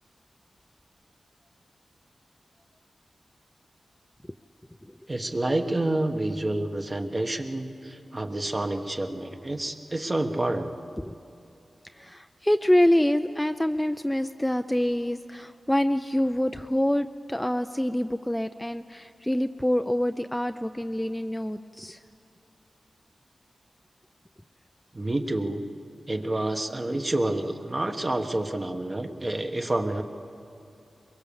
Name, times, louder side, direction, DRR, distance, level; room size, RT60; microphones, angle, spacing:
voice 1, 5.1-10.8 24.9-25.6 26.1-30.0, right 1 dB, 30° right, 5 dB, 1.4 m, -28 dB
voice 2, 11.8-22.0, left 1 dB, 10° left, 8 dB, 0.5 m, -26 dB
22.5 x 22.0 x 7.1 m, 2.6 s
wide cardioid pair, 70°, 0 cm